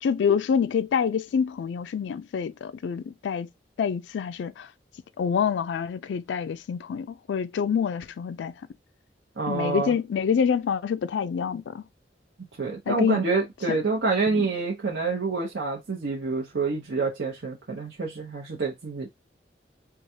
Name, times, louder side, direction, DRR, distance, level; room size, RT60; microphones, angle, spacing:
voice 1, 0.0-3.5 3.8-4.7 5.2-8.5 9.5-11.8 12.9-13.2 13.7-13.8 14.3-14.4, left 7 dB, 85° left, 0.3 m, -26 dB
voice 2, 9.4-10.0 12.6-19.1, right 4 dB, 75° right, 0.8 m, -27 dB
4.6 x 2.3 x 2.7 m
head